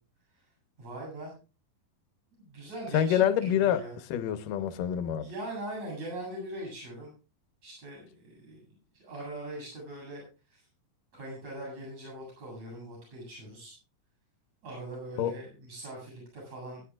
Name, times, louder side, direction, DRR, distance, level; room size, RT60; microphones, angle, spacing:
voice 1, 0.8-1.3 2.3-4.0 5.2-7.1 7.6-8.6 9.0-10.3 10.5-10.6 11.1-13.8 14.6-16.8, right 1 dB, 45° right, 8.9 m, -41 dB
voice 2, 2.9-3.8 4.1-5.3 15.2-15.3, left 10 dB, 70° left, 2.4 m, -26 dB
22.5 x 11.0 x 2.4 m
omnidirectional pair, 4.3 m